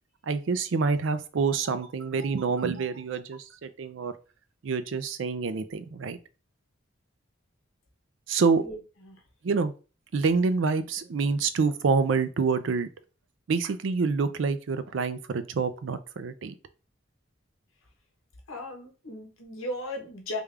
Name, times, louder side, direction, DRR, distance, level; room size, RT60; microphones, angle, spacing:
voice 1, 0.2-4.1 4.6-6.2 8.3-8.6 9.4-9.7 10.1-12.9 13.5-16.5, right 4 dB, 70° right, 12 dB, 0.4 m, -27 dB
voice 2, 8.5-9.2 18.5-20.4, left 1 dB, 85° left, 2 dB, 1.1 m, -37 dB
3.4 x 2.3 x 3.3 m, 0.34 s
head